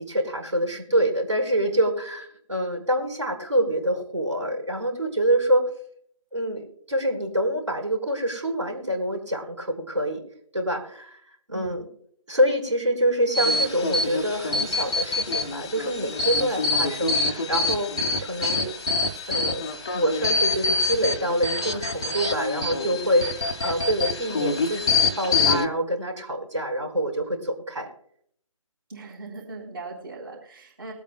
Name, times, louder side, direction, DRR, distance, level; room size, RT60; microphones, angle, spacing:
voice 1, 0.0-5.7 6.3-10.2 10.5-11.2 11.5-11.9 12.3-17.9 18.2-18.7 19.3-19.6 19.9-27.9, right 1 dB, 60° right, 2 dB, 4.3 m, -26 dB
sound 1, 13.3-25.7, left 3 dB, 10° left, 0.4 m, -26 dB
voice 2, 28.9-30.9, right 3 dB, 45° right, -3 dB, 3.5 m, -39 dB
22.0 x 8.2 x 2.2 m, 0.64 s
figure-of-eight pair, 155°, 18 cm